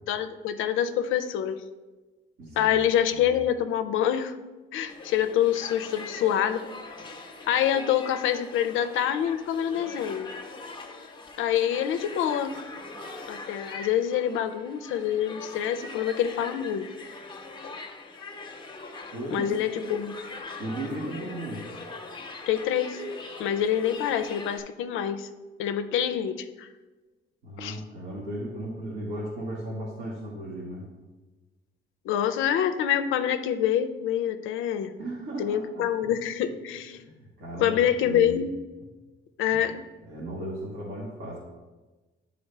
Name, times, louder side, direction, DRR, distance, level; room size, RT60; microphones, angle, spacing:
voice 1, 0.1-1.6 2.6-4.4 4.7-6.7 7.5-10.3 11.4-12.6 13.3-16.9 17.6-17.8 19.3-20.2 22.5-23.0 23.4-25.3 25.6-26.7 27.6-27.8 32.1-34.9 35.4-37.0 37.6-38.5 39.4-39.8, left 10 dB, 85° left, 8 dB, 0.4 m, -26 dB
voice 2, 2.4-2.7 3.1-3.2 19.1-19.5 20.6-21.6 27.4-30.9 35.0-36.1 36.9-37.8 38.0-38.4 39.5-39.6 40.0-41.4, right 1 dB, 75° right, -8 dB, 1.6 m, -36 dB
sound 1, 4.9-24.6, left 3 dB, 25° left, 0.8 m, -42 dB
9.6 x 3.8 x 3.3 m, 1.2 s
cardioid pair, 90°, 20 cm